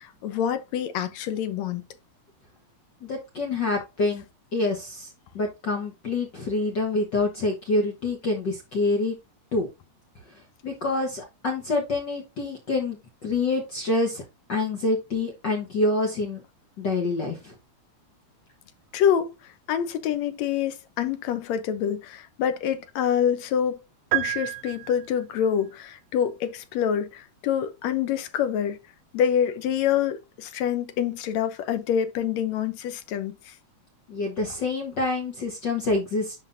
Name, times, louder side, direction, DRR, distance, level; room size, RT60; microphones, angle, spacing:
voice 1, 0.0-1.8 18.9-19.3 19.7-23.8 24.1-28.8 29.1-33.5, left 9 dB, 75° left, 2.0 m, -26 dB
voice 2, 3.0-4.2 4.5-5.1 5.3-9.2 9.5-9.7 10.6-14.2 14.5-16.4 16.8-17.5 34.1-36.3, left 2 dB, 45° left, 1.6 m, -26 dB
sound 1, 24.1-25.4, right 18 dB, 85° right, 1.4 m, -29 dB
11.0 x 3.7 x 2.6 m
omnidirectional pair, 3.3 m